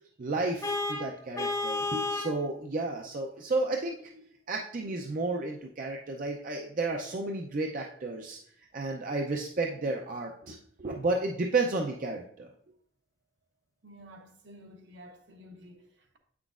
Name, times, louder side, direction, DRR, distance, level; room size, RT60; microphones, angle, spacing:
voice 1, 0.2-4.1 4.5-8.4 8.7-12.5, right 3 dB, 45° right, 0.5 m, -32 dB
Vehicle horn car horn honking, 0.6-2.4, left 3 dB, 15° left, 0.4 m, -31 dB
voice 2, 13.8-16.2, equal, 65° right, 1.0 m, -51 dB
8.0 x 6.0 x 2.4 m
head